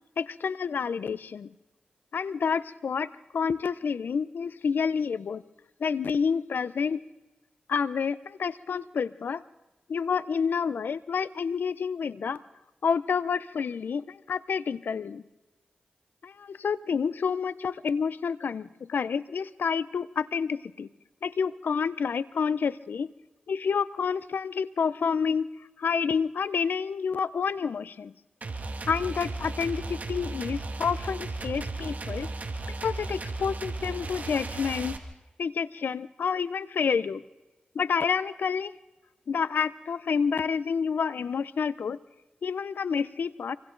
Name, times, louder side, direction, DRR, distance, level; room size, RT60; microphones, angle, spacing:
voice 1, 0.2-1.5 2.1-5.4 5.8-7.0 7.7-9.4 9.9-12.4 12.8-15.2 16.2-20.9 21.2-23.1 23.5-25.5 25.8-28.1 28.9-32.3 32.8-34.9 35.4-37.2 37.7-38.7 39.3-42.0 42.4-43.6, left 6 dB, 80° left, 17 dB, 0.6 m, -29 dB
sound 1, 28.4-35.0, right 3 dB, 55° right, 1.9 m, -35 dB
26.5 x 25.5 x 3.9 m, 1.0 s
cardioid pair, 50°, 3 cm